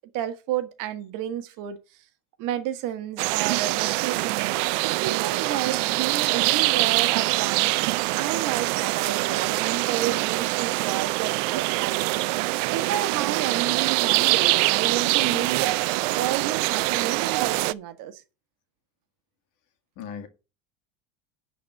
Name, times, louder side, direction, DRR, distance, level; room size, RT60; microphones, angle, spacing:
voice 1, 0.1-1.8 2.4-7.7 8.1-12.2 12.7-15.7 16.2-18.2, right 11 dB, 60° right, 1.4 m, -31 dB
sound 1, 3.2-17.7, right 21 dB, 80° right, 0.5 m, -24 dB
voice 2, 15.2-15.6 20.0-20.3, left 8 dB, 55° left, 2.0 m, -38 dB
10.5 x 4.2 x 7.6 m
supercardioid pair, 130°, 36 cm